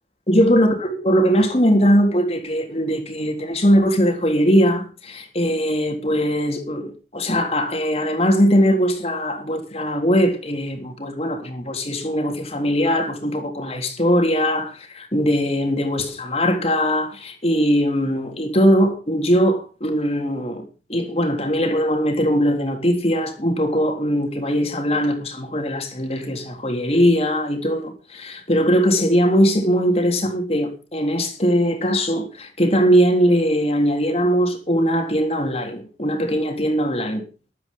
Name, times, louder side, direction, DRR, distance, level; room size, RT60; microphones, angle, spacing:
voice 1, 0.3-37.2, equal, 35° left, 3.6 m, -20 dB
13.5 x 12.5 x 5.5 m
head